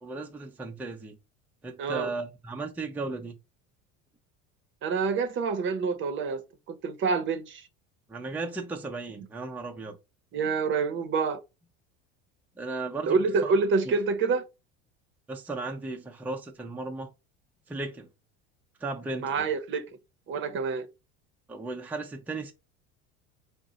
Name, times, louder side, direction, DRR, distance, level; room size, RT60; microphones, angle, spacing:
voice 1, 0.0-1.2 1.6-3.4 8.1-10.0 12.6-13.2 13.4-13.5 15.3-17.1 17.7-18.1 18.8-19.5 21.5-22.5, right 3 dB, 5° right, 0.5 m, -35 dB
voice 2, 1.8-2.1 4.8-7.6 10.3-11.4 13.1-14.4 19.2-19.9 20.3-20.9, right 4 dB, 40° right, 0.7 m, -27 dB
3.9 x 2.1 x 3.8 m
supercardioid pair, 105°, 29 cm